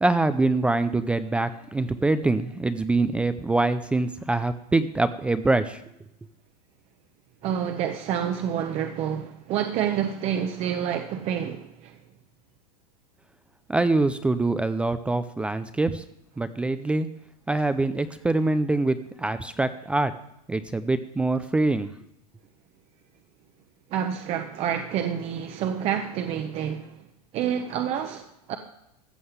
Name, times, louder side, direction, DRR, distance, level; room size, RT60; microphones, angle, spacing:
voice 1, 0.0-5.8 13.7-16.0 16.4-17.1 17.5-20.1 20.5-21.9, right 2 dB, 5° right, 0.3 m, -24 dB
voice 2, 7.4-12.0 23.9-27.0 27.3-28.6, right 9 dB, 30° right, 0.8 m, -28 dB
14.5 x 5.5 x 8.0 m
supercardioid pair, 150°, 21 cm